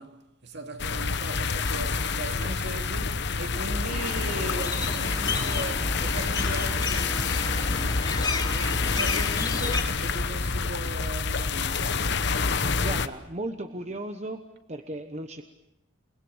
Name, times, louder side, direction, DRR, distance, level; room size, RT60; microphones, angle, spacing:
voice 1, 0.0-8.1 8.5-12.5, right 2 dB, 55° right, 2.5 m, -38 dB
sound 1, 0.8-13.1, left 4 dB, 55° left, 1.1 m, -27 dB
sound 2, 3.9-9.8, left 3 dB, 20° left, 3.2 m, -33 dB
voice 2, 12.8-14.4 14.7-15.4, right 1 dB, 30° right, 1.1 m, -35 dB
29.0 x 20.5 x 8.0 m
head